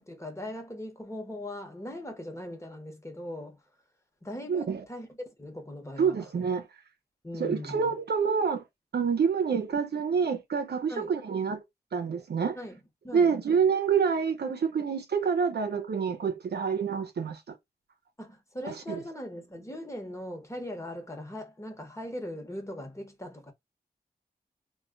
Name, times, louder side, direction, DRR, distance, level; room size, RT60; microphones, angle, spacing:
voice 1, 0.0-3.6 4.2-6.2 7.2-7.9 10.9-11.1 12.5-13.3 18.2-23.5, left 1 dB, 15° left, 1.0 m, -40 dB
voice 2, 4.5-4.8 6.0-6.6 7.4-8.6 8.9-11.6 11.9-12.6 13.1-17.5 18.6-19.0, right 6 dB, 80° right, 0.6 m, -27 dB
2.3 x 2.1 x 3.7 m
cardioid pair, 65°, 17 cm